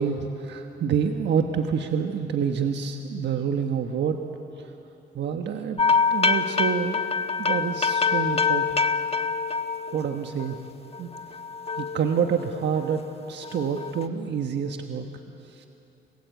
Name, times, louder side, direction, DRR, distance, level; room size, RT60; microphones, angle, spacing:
voice 1, 0.0-4.2 5.1-5.8 6.1-7.0 7.4-8.7 9.9-10.6 11.0-11.1 11.8-15.1 15.4-15.7, right 7 dB, 60° right, 5 dB, 1.4 m, -27 dB
sound 1, 5.8-10.6 10.9-13.0 13.4-14.1, left 5 dB, 30° left, 1.3 m, -26 dB
28.5 x 21.0 x 8.4 m, 2.9 s
cardioid pair, 90°, 20 cm